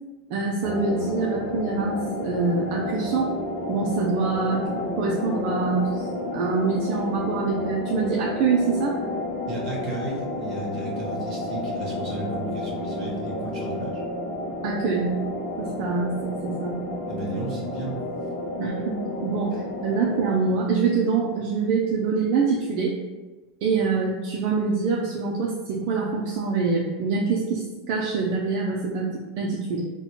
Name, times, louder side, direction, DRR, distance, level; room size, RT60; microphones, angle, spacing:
voice 1, 0.3-3.3 3.7-9.0 14.6-15.2 15.6-16.8 18.6-19.5 19.8-23.0 23.6-29.8, right 4 dB, 60° right, -3 dB, 0.5 m, -25 dB
sound 1, 0.6-20.3, left 2 dB, 55° left, 0.6 m, -31 dB
voice 2, 9.5-13.9 17.1-18.0, right 2 dB, 40° right, -3 dB, 1.2 m, -34 dB
4.1 x 2.2 x 2.9 m, 1.2 s
supercardioid pair, 125°, 0 cm